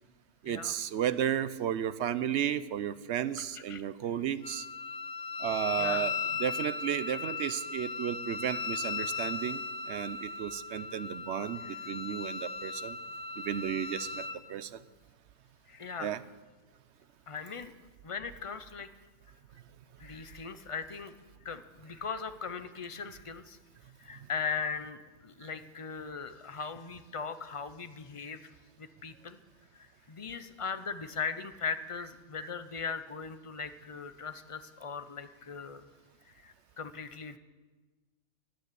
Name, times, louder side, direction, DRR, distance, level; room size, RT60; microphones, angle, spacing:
voice 1, 0.4-4.7 5.4-6.1 6.4-13.0 13.4-14.8 16.0-16.2 24.2-24.3 25.4-25.5 32.4-32.5, right 10 dB, 60° right, 15 dB, 0.8 m, -33 dB
Wind instrument woodwind instrument, 4.4-14.4, left 4 dB, 60° left, 1.2 m, -37 dB
voice 2, 5.8-6.1 11.6-11.8 15.7-16.1 17.3-17.7 18.0-18.9 20.0-21.1 21.4-23.6 24.0-28.5 28.8-29.4 29.7-35.9 36.3-37.4, left 5 dB, 30° left, 11 dB, 0.6 m, -39 dB
14.5 x 9.3 x 9.8 m, 1.3 s
omnidirectional pair, 1.4 m